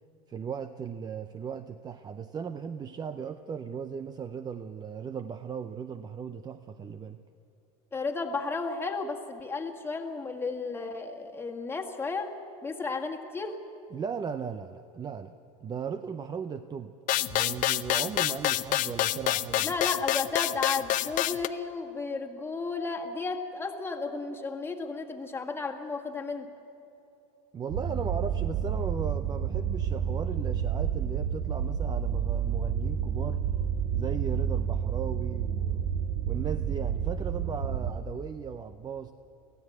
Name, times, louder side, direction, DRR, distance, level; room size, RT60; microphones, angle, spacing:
voice 1, 0.3-7.2 13.9-15.3 15.6-16.9 17.3-19.7 27.5-33.4 33.9-35.9 36.3-39.1, right 6 dB, 20° right, 10 dB, 0.6 m, -37 dB
voice 2, 7.9-12.3 12.6-13.5 19.6-26.5, left 4 dB, 10° left, 2 dB, 1.8 m, -33 dB
sound 1, 17.1-21.5, left 15 dB, 45° left, 0.6 m, -27 dB
sound 2, 27.7-37.9, right 8 dB, 50° right, 1.7 m, -30 dB
24.0 x 16.5 x 7.9 m, 2.9 s
supercardioid pair, 135°, 19 cm